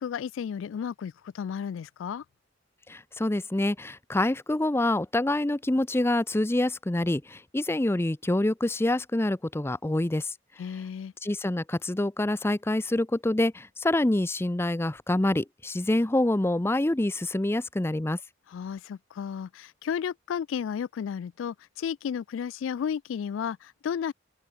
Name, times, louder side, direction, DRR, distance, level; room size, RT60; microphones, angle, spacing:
voice 1, 0.0-2.2 10.6-11.1 18.5-24.1, left 7 dB, 85° left, 0.3 m, -33 dB
voice 2, 2.9-10.3 11.2-18.2, left 1 dB, 15° left, 0.5 m, -26 dB
open air
head